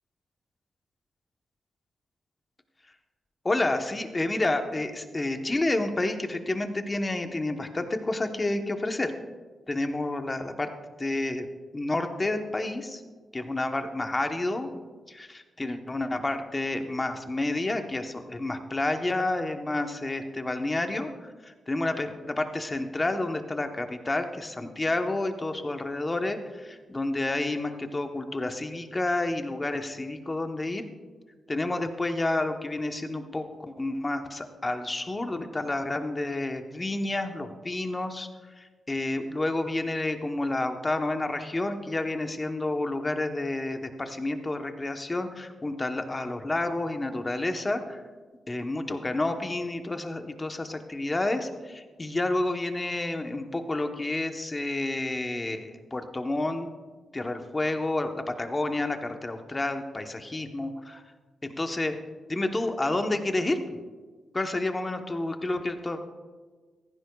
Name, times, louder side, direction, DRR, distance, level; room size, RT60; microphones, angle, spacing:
voice 1, 3.4-9.1 9.7-10.7 11.0-11.5 11.7-13.0 13.3-14.8 15.1-30.8 31.5-38.3 38.6-48.0 48.5-56.7 57.1-61.0 61.4-61.9 62.3-63.8 64.3-66.0, left 2 dB, 20° left, 6 dB, 1.0 m, -30 dB
15.5 x 14.5 x 2.3 m, 1.4 s
cardioid pair, 110°, 0 cm